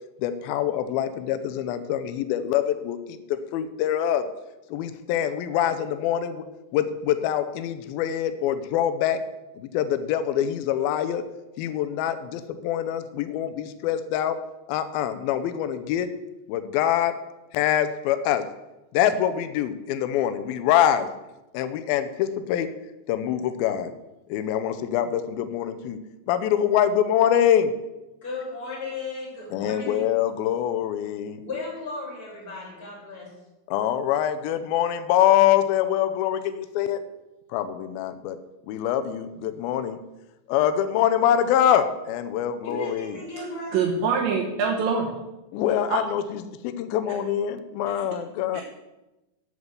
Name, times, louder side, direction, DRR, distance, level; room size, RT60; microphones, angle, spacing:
voice 1, 0.2-4.2 4.7-6.4 6.7-9.2 9.6-11.2 11.6-14.4 14.7-16.1 16.5-17.1 17.5-18.4 18.9-21.1 21.5-22.7 23.1-23.9 24.3-26.0 26.3-27.7 29.5-31.4 33.7-37.0 37.5-38.4 38.7-40.0 40.5-43.2 45.5-48.6, left 10 dB, 85° left, 10 dB, 2.1 m, -24 dB
voice 2, 28.2-30.1 31.4-33.3 42.6-43.8, left 2 dB, 20° left, -3 dB, 3.5 m, -35 dB
voice 3, 43.7-45.1 45.9-46.0 48.5-48.6, right 5 dB, 80° right, -3 dB, 3.5 m, -24 dB
8.0 x 8.0 x 6.9 m, 1.0 s
omnidirectional pair, 5.0 m